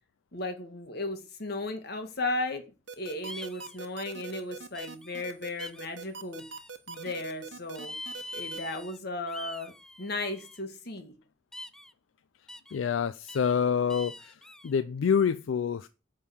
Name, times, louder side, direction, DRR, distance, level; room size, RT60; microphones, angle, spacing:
voice 1, 0.3-2.6 3.0-6.5 6.9-7.9 8.3-9.7 10.0-11.1, left 2 dB, 55° left, 1.7 m, -35 dB
sound 1, 2.9-8.6, right 5 dB, 65° right, 1.0 m, -42 dB
sound 2, 3.3-3.8 4.7-5.2 5.6-5.9 6.4-7.1 7.8-9.0 9.3-10.6 11.5-11.9 12.5-12.8 13.3-13.5 13.9-14.7, left 1 dB, 5° left, 0.4 m, -44 dB
voice 2, 12.7-14.3 14.6-15.9, left 7 dB, 80° left, 0.4 m, -27 dB
9.5 x 3.8 x 7.0 m
head